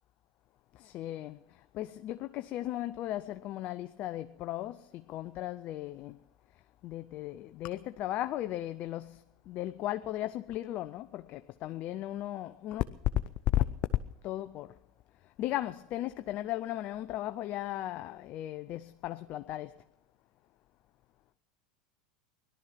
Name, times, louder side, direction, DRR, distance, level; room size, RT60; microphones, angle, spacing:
voice 1, 0.7-6.2 6.8-12.8 13.5-13.7 14.2-14.8 15.2-19.8, left 14 dB, 50° left, 0.6 m, -36 dB
18.0 x 12.0 x 5.9 m
hypercardioid pair, 90°, 3 cm